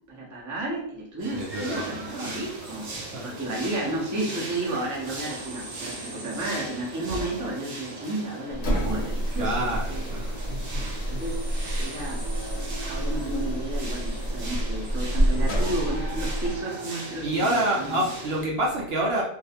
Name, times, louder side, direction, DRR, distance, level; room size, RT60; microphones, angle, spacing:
voice 1, 0.1-2.9 3.2-10.4 10.8-12.2 12.8-18.1, right 1 dB, 25° right, -4 dB, 0.4 m, -32 dB
sound 1, 1.2-18.5, right 2 dB, 90° right, 1.1 m, -39 dB
voice 2, 1.3-2.4 2.9-3.3 9.4-10.8 11.1-11.2 17.2-19.2, right 1 dB, 60° right, -2 dB, 0.7 m, -28 dB
sound 2, 4.6-6.5 7.0-7.6, right 1 dB, 5° right, 0.8 m, -43 dB
sound 3, 8.5-16.6, right 1 dB, 60° left, 0.9 m, -28 dB
2.4 x 2.1 x 2.7 m, 0.68 s
omnidirectional pair, 1.3 m